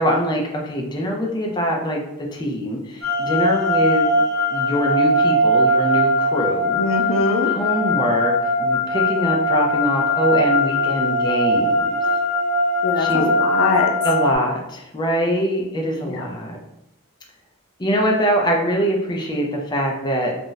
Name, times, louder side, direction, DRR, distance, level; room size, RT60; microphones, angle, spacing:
voice 1, 0.0-4.2 4.5-6.8 7.4-12.0 13.0-13.2 14.0-16.6 17.8-20.3, equal, 20° left, 0 dB, 0.4 m, -23 dB
sound 1, 3.0-14.4, left 1 dB, 80° right, 0.9 m, -20 dB
voice 2, 6.8-7.5 12.8-13.9 16.1-16.2, left 2 dB, 80° left, 4 dB, 0.4 m, -22 dB
2.4 x 2.1 x 3.8 m, 0.85 s
head